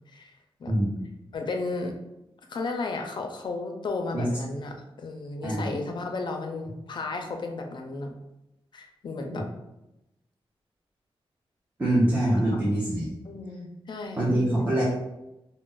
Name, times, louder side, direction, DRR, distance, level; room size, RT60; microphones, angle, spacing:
voice 1, 1.3-1.9 2.5-8.1 8.7-9.5 12.5-12.6 13.2-14.7, left 3 dB, 50° left, 3 dB, 0.4 m, -34 dB
voice 2, 5.4-5.8 9.3-9.4 11.8-13.1 14.2-14.8, right 1 dB, 20° right, -7 dB, 0.7 m, -24 dB
2.4 x 2.0 x 3.7 m, 0.92 s
wide cardioid pair, 115°, 10 cm